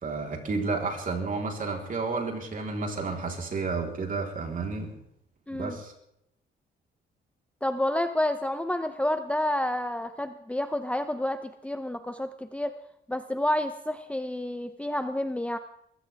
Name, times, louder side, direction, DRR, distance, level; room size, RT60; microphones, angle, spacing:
voice 1, 0.0-4.9 5.5-5.9, right 4 dB, 45° right, 1 dB, 4.0 m, -31 dB
voice 2, 5.5-5.8 7.6-12.7 13.1-15.6, left 1 dB, 5° left, 9 dB, 0.8 m, -29 dB
21.5 x 16.0 x 3.6 m, 0.76 s
cardioid pair, 90°, 20 cm